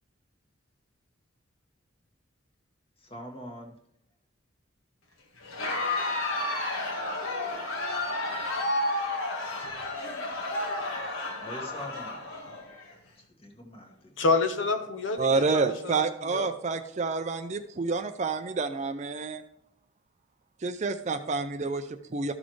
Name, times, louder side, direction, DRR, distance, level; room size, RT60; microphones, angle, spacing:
voice 1, 3.0-3.7 11.4-12.2 13.2-14.1, equal, 25° left, 1 dB, 1.5 m, -43 dB
Crowd, 5.4-12.9, left 2 dB, 90° left, 1.6 m, -31 dB
voice 2, 14.2-16.5, left 3 dB, 60° left, 6 dB, 0.8 m, -28 dB
voice 3, 15.2-19.4 20.6-22.3, right 4 dB, 35° right, 9 dB, 0.4 m, -29 dB
13.0 x 6.2 x 3.1 m, 0.72 s
head